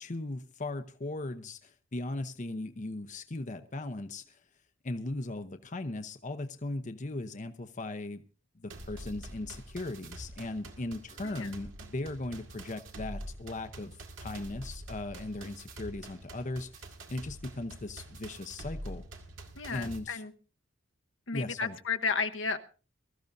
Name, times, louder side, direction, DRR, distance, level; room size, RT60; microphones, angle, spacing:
voice 1, 0.0-4.4 4.8-8.2 8.6-19.0 19.7-20.2 21.3-21.8, left 2 dB, 40° left, 8 dB, 0.8 m, -38 dB
sound 1, 8.7-20.0, right 1 dB, 85° right, 2.1 m, -46 dB
voice 2, 19.6-20.3 21.3-22.6, left 5 dB, 70° left, 7 dB, 1.1 m, -33 dB
22.5 x 13.5 x 2.7 m, 0.35 s
head